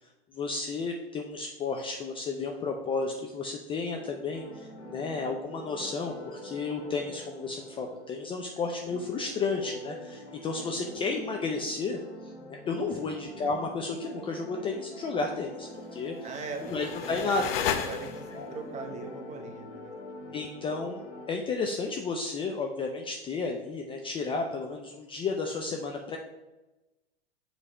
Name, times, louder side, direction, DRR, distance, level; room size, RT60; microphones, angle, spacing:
voice 1, 0.3-12.0 12.5-16.2 16.7-17.4 18.4-18.5 20.3-21.0 21.3-26.2, left 4 dB, 15° left, 2 dB, 0.4 m, -32 dB
sound 1, 3.8-21.3, left 1 dB, 80° left, 2.1 m, -45 dB
voice 2, 12.9-13.2 16.2-16.7 17.0-19.9 20.3-20.4, right 4 dB, 20° right, 4 dB, 0.9 m, -41 dB
sound 2, 16.2-18.5, left 8 dB, 60° left, 0.8 m, -33 dB
7.5 x 3.2 x 4.9 m, 1.0 s
hypercardioid pair, 105°, 33 cm